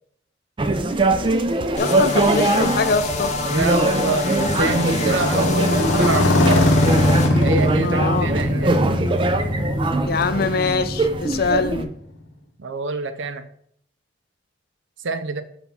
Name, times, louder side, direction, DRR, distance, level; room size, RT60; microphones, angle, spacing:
sound 1, 0.6-11.8, right 2 dB, 25° right, 0.4 m, -23 dB
voice 1, 1.8-3.3 7.8-8.3 10.1-11.9, left 4 dB, 50° left, 12 dB, 0.4 m, -23 dB
sound 2, 1.8-7.3, left 2 dB, 35° left, 0.8 m, -26 dB
Motorcycle, 2.5-12.1, left 1 dB, 90° left, 1.0 m, -22 dB
voice 2, 3.5-6.9 7.4-9.2 12.6-13.4 15.0-15.4, right 3 dB, 80° right, 9 dB, 0.6 m, -26 dB
5.8 x 3.5 x 5.4 m, 0.66 s
head